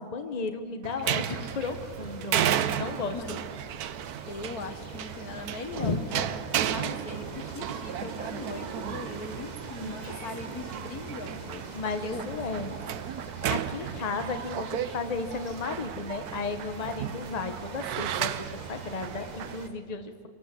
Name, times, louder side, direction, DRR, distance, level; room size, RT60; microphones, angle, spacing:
voice 1, 0.0-2.5 2.8-3.4 5.8-6.0 9.8-9.9 11.7-12.7 13.5-20.3, left 4 dB, 30° left, 7 dB, 1.1 m, -34 dB
sound 1, 0.8-19.6, right 10 dB, 85° right, 1.2 m, -34 dB
sound 2, 1.0-19.7, right 2 dB, 30° right, 1.4 m, -44 dB
voice 2, 4.3-11.8 12.0-12.3 13.8-13.9, left 3 dB, 85° left, 8 dB, 2.0 m, -40 dB
25.0 x 18.5 x 7.7 m, 2.4 s
omnidirectional pair, 1.6 m